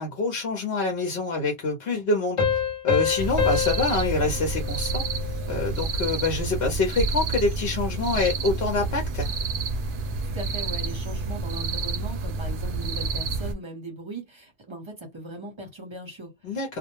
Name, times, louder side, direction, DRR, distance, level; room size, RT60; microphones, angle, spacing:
voice 1, 0.0-2.6 2.8-5.0 5.5-9.3 16.4-16.8, left 3 dB, 70° left, 0.9 m, -26 dB
Piano, 2.4-5.7, left 7 dB, 35° left, 0.7 m, -27 dB
sound 1, 3.2-13.5, right 3 dB, 60° right, 0.7 m, -29 dB
voice 2, 10.3-16.8, right 2 dB, 30° right, 0.9 m, -39 dB
2.2 x 2.2 x 2.9 m
omnidirectional pair, 1.1 m